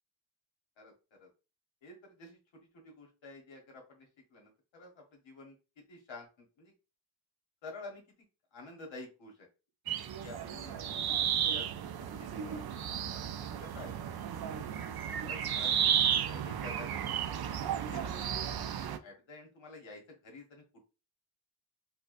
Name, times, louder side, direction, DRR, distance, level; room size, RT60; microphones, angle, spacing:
voice 1, 1.8-5.5 5.9-6.7 7.6-8.0 8.5-9.5 10.2-12.8 13.4-14.0 14.4-14.6 15.1-17.0 17.9-18.1 19.0-20.8, left 2 dB, 90° left, 1 dB, 1.2 m, -50 dB
sound 1, 9.9-19.0, right 9 dB, 55° right, 0.5 m, -33 dB
4.3 x 2.2 x 2.5 m, 0.31 s
cardioid pair, 80°, 45 cm